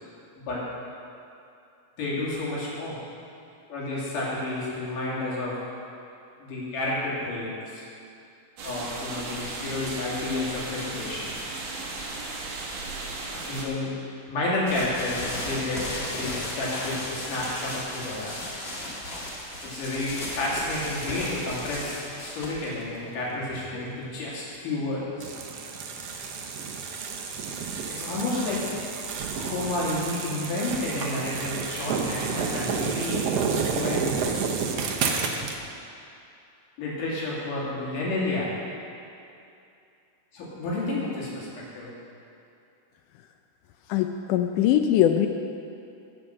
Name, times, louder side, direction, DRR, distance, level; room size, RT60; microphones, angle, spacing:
voice 1, 2.0-3.0 3.7-5.6 6.4-7.9 8.6-11.3 13.3-13.9 14.3-18.3 19.6-25.3 27.9-28.6 29.3-34.4 36.8-38.5 40.3-41.9, left 2 dB, 65° left, -6 dB, 4.0 m, -31 dB
sound 1, 8.6-13.6, right 2 dB, 65° right, 3.1 m, -35 dB
sound 2, 14.7-24.2, left 1 dB, 35° left, 1.0 m, -35 dB
sound 3, 25.2-35.6, right 5 dB, 80° right, 1.4 m, -30 dB
voice 2, 43.9-45.3, left 11 dB, 80° left, 6 dB, 1.9 m, -21 dB
15.0 x 6.3 x 6.4 m, 2.7 s
omnidirectional pair, 4.1 m